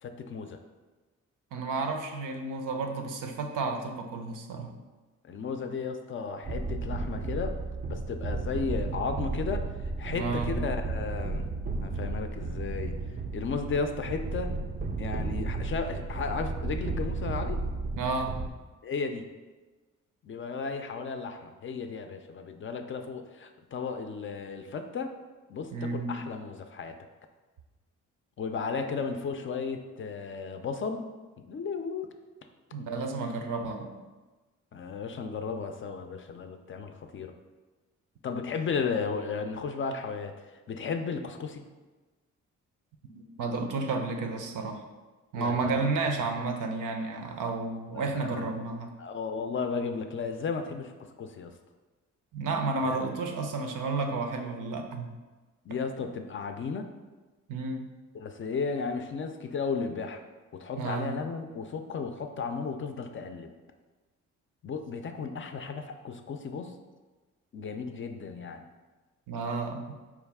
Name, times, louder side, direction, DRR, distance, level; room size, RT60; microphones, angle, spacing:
voice 1, 0.0-0.6 5.2-7.6 7.9-11.5 11.8-12.9 13.3-14.5 15.0-17.6 18.8-19.3 20.2-25.1 25.5-27.0 28.4-31.1 31.5-32.1 34.7-37.3 38.2-41.6 45.3-45.9 47.9-48.5 49.0-50.9 51.2-51.5 52.8-53.0 55.7-56.9 58.1-60.2 60.5-63.5 64.6-66.7 67.5-68.7, left 5 dB, 40° left, 6 dB, 0.4 m, -34 dB
voice 2, 1.5-4.7 10.1-10.5 17.9-18.5 25.7-26.2 32.7-33.9 43.1-44.8 45.3-48.9 52.3-55.1 57.5-57.9 60.8-61.2 69.3-69.9, right 3 dB, 80° right, 4 dB, 0.6 m, -32 dB
sound 1, 6.4-18.5, right 3 dB, 30° right, 0.4 m, -33 dB
4.6 x 2.3 x 3.4 m, 1.2 s
cardioid pair, 75°, 31 cm